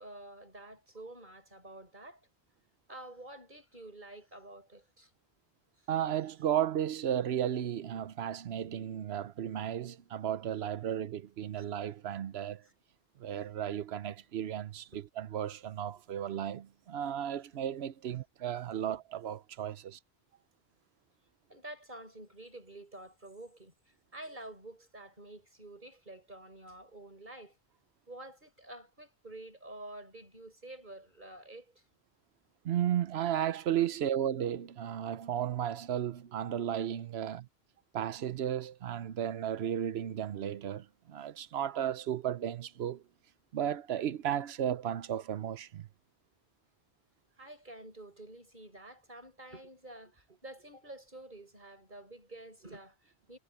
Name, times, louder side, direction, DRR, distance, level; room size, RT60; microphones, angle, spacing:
voice 1, 0.0-2.3 2.9-5.1 5.8-5.9 12.6-12.7 14.9-15.0 15.8-15.9 18.1-18.2 21.5-27.6 28.1-31.8 47.4-53.4, right 1 dB, 50° right, 7.3 m, -49 dB
voice 2, 5.9-12.6 13.2-14.9 15.2-20.0 32.6-37.5 37.9-43.0 43.5-45.9, right 10 dB, 90° right, 1.0 m, -34 dB
omnidirectional pair, 1.0 m